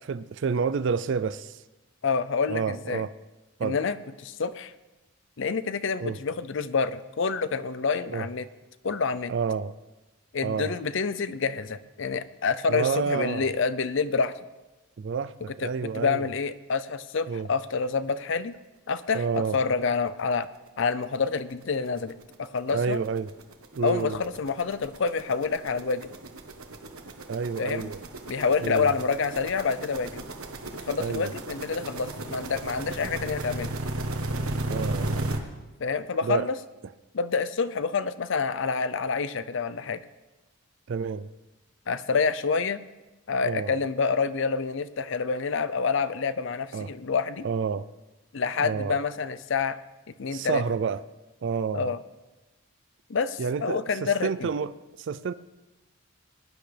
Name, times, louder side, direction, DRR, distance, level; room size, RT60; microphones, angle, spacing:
voice 1, 0.1-1.6 2.5-3.1 3.6-3.8 6.0-6.2 8.1-8.3 9.3-9.7 10.4-10.7 12.7-13.5 15.0-16.3 17.3-17.5 19.1-19.6 22.7-23.3 23.7-24.2 27.3-28.0 28.6-28.9 31.0-31.3 34.7-35.4 36.2-36.5 36.8-36.9 40.9-41.3 43.4-43.8 46.7-46.9 47.4-47.9 48.6-49.0 50.3-51.0 51.4-51.9 53.4-55.3, right 5 dB, 55° right, 15 dB, 0.3 m, -29 dB
voice 2, 2.0-3.0 3.6-4.7 5.4-8.5 8.8-9.3 10.3-14.3 15.6-18.6 18.9-20.5 20.8-23.0 23.8-26.1 27.6-27.9 28.3-30.2 30.7-33.8 35.8-36.5 37.1-40.0 41.9-42.8 43.3-47.5 48.3-49.8 50.2-50.6 51.7-52.0 53.1-54.5, left 5 dB, 55° left, 14 dB, 0.5 m, -28 dB
sound 1, 20.0-20.1 20.4-20.5 20.8-35.4, right 2 dB, 80° right, 1.3 m, -35 dB
20.0 x 10.5 x 3.4 m, 1.1 s
head